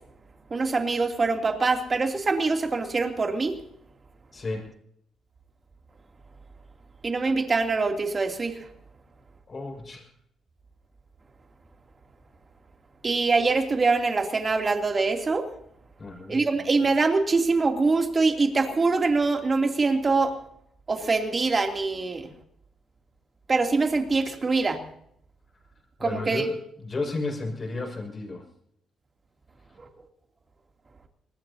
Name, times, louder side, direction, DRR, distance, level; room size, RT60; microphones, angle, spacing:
voice 1, 0.5-3.6 7.0-8.6 13.0-15.5 16.3-20.3 20.9-22.3 23.5-24.8 26.0-26.4, right 3 dB, 30° right, 4 dB, 2.8 m, -24 dB
voice 2, 4.3-4.7 9.5-10.1 16.0-16.5 26.0-26.5 26.8-28.4, left 3 dB, 35° left, 2 dB, 6.0 m, -33 dB
24.5 x 19.5 x 2.8 m, 0.70 s
cardioid pair, 90°, 0 cm